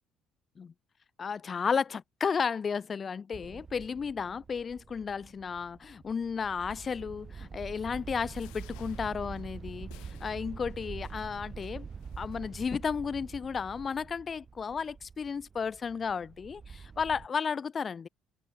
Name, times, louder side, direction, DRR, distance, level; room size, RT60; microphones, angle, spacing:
voice 1, 1.2-9.9 10.2-11.9 12.2-18.1, left 6 dB, 35° left, 0.3 m, -33 dB
sound 1, 3.3-17.3, right 5 dB, 35° right, 0.7 m, -45 dB
sound 2, 8.2-12.8 13.4-13.5 13.8-13.9, left 25 dB, 90° left, 2.4 m, -59 dB
cardioid pair, 90°, 0 cm